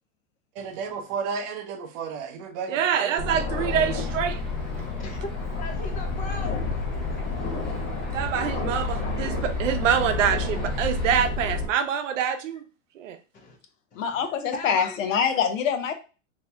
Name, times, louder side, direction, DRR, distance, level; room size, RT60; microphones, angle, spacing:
voice 1, 0.5-3.5, right 5 dB, 35° right, 0.6 m, -33 dB
voice 2, 2.7-4.3 8.1-12.6 13.0-13.2, right 8 dB, 75° right, 0.7 m, -25 dB
Aircraft, 3.2-11.7, left 3 dB, 40° left, 0.9 m, -29 dB
sound 1, 3.6-11.2, right 1 dB, ahead, 1.0 m, -45 dB
voice 3, 5.0-6.6 13.3-13.6 13.9-14.3 14.5-15.0, left 3 dB, 20° left, 0.5 m, -38 dB
voice 4, 14.0-16.0, left 7 dB, 80° left, 0.8 m, -25 dB
2.8 x 2.6 x 3.2 m
supercardioid pair, 140°, 38 cm